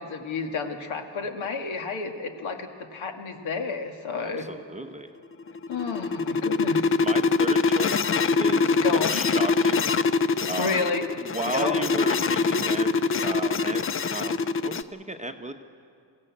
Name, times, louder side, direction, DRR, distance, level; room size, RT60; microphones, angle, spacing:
voice 1, 0.0-4.5 5.7-6.9 8.8-9.2 10.6-11.1 11.5-11.9, left 4 dB, 70° left, 5 dB, 2.1 m, -30 dB
voice 2, 4.2-5.1 7.0-9.8 10.5-10.8 11.2-12.9 13.2-15.5, right 2 dB, 15° right, 5 dB, 0.9 m, -34 dB
sound 1, 5.4-14.8, left 4 dB, 30° left, 0.5 m, -23 dB
22.0 x 16.0 x 8.6 m, 2.3 s
cardioid pair, 115°, 49 cm